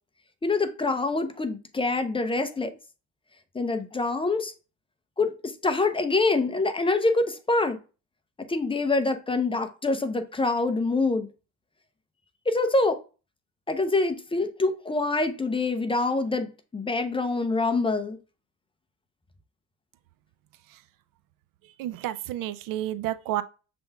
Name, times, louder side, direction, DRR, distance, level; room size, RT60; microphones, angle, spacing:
voice 1, 0.4-2.7 3.5-4.5 5.2-7.8 8.5-11.3 12.5-13.0 13.7-18.2, left 3 dB, 15° left, 0.6 m, -25 dB
voice 2, 21.8-23.4, right 13 dB, 70° right, 0.5 m, -30 dB
6.9 x 3.4 x 2.2 m
cardioid pair, 115°, 35 cm